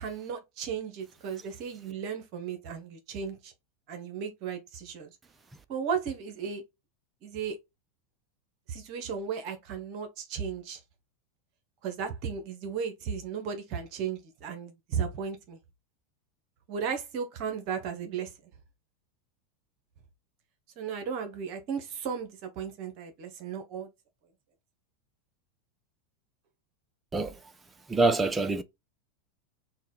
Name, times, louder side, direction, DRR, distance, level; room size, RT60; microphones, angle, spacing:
voice 1, 0.0-3.5 3.9-5.2 5.7-6.6 7.2-7.6 8.7-10.8 11.8-15.6 16.7-18.3 20.8-23.9 28.0-28.1, right 6 dB, 50° right, 0.8 m, -35 dB
voice 2, 27.9-28.6, right 3 dB, 15° right, 0.5 m, -25 dB
4.2 x 2.2 x 3.7 m
hypercardioid pair, 90°, 0 cm